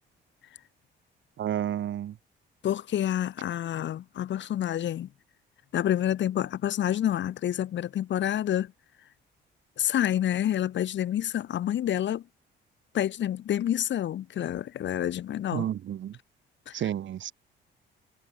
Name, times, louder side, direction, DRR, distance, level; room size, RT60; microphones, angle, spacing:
voice 1, 1.4-2.2 15.5-16.2 16.7-17.3, right 11 dB, 70° right, 6.3 m, -31 dB
voice 2, 2.6-5.1 5.7-8.7 9.8-12.2 12.9-15.7 16.7-16.8, left 11 dB, 65° left, 1.8 m, -28 dB
cardioid pair, 90°, 20 cm